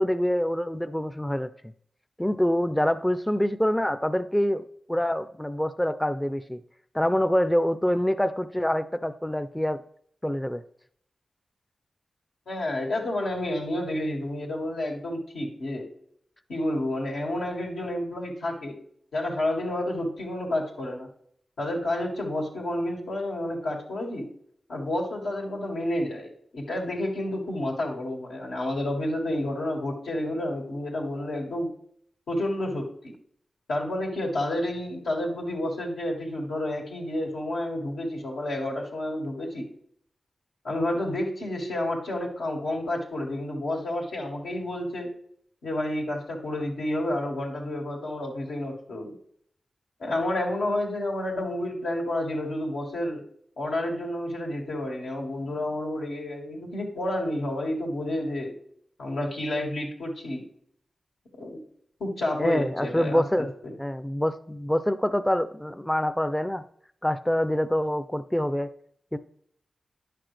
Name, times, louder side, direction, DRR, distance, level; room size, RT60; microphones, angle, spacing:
voice 1, 0.0-1.7 2.2-6.6 6.9-9.8 10.2-10.6 62.4-63.5 63.8-66.6 67.0-68.7 69.1-69.2, equal, 10° left, 11 dB, 0.4 m, -26 dB
voice 2, 12.5-15.9 16.5-18.8 19.1-21.1 21.6-24.3 24.7-31.7 32.3-33.1 33.7-39.7 40.6-45.1 45.6-49.2 50.0-53.2 53.6-58.5 59.0-60.4 61.4-61.6 62.0-63.7, left 1 dB, 90° left, -2 dB, 2.0 m, -30 dB
10.0 x 5.9 x 3.3 m, 0.65 s
cardioid pair, 45°, 0 cm